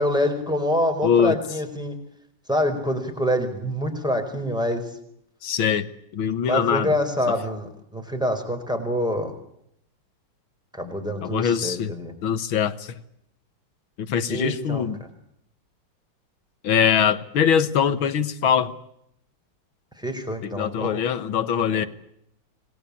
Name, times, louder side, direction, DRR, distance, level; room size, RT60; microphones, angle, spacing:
voice 1, 0.0-2.0 2.5-5.0 6.4-9.3 10.7-12.1 14.3-14.9 20.0-21.0 21.7-21.9, equal, ahead, 5 dB, 4.7 m, -26 dB
voice 2, 1.0-1.4 5.4-5.9 6.1-6.9 11.2-11.9 12.2-12.9 14.0-15.0 16.6-18.7 20.4-21.9, left 8 dB, 90° left, 13 dB, 2.2 m, -22 dB
27.0 x 20.0 x 8.6 m, 0.75 s
omnidirectional pair, 2.2 m